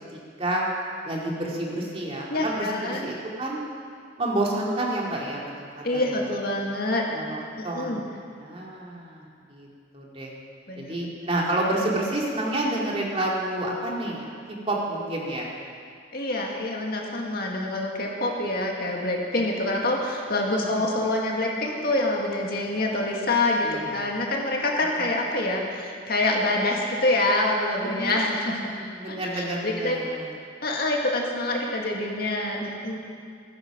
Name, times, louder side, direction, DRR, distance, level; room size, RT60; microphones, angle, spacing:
voice 1, 0.1-0.7 1.0-3.6 4.2-6.3 7.1-8.0 8.4-9.2 9.5-9.7 9.9-10.3 10.8-14.3 14.7-15.5 20.7-20.8 23.6-24.1 27.8-30.3, right 1 dB, 30° right, -3 dB, 2.5 m, -29 dB
voice 2, 2.3-3.1 5.8-7.0 7.6-8.0 10.7-11.0 16.1-30.0 30.6-33.0, left 2 dB, 50° left, -1 dB, 2.1 m, -26 dB
15.0 x 14.0 x 6.1 m, 2.2 s
head